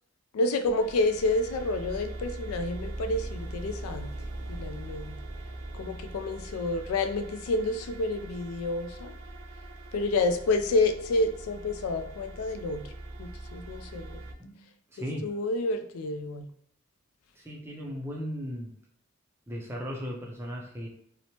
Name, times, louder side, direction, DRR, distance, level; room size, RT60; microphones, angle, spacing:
voice 1, 0.3-4.1 4.5-5.2 5.7-9.1 9.9-12.9 13.2-14.2 15.0-16.5, left 2 dB, 80° left, 7 dB, 0.3 m, -29 dB
sound 1, 0.7-14.3, right 2 dB, 85° right, 0.5 m, -41 dB
voice 2, 14.9-15.3 17.4-18.7 19.5-20.9, equal, 10° right, -2 dB, 0.4 m, -36 dB
2.9 x 2.0 x 2.8 m, 0.67 s
head